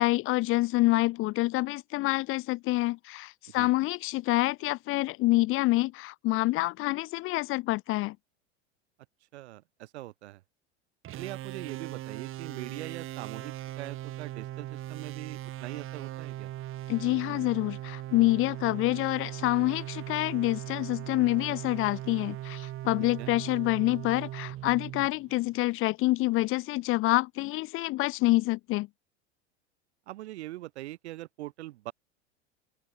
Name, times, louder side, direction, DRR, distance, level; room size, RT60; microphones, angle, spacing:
voice 1, 0.0-8.2 16.9-28.9, left 19 dB, 40° left, 0.6 m, -27 dB
voice 2, 9.3-10.4 11.2-16.5 23.0-23.3 30.1-31.9, right 16 dB, 70° right, 1.4 m, -42 dB
sound 1, 11.0-25.6, right 14 dB, 40° right, 1.8 m, -39 dB
open air
hypercardioid pair, 90°, 34 cm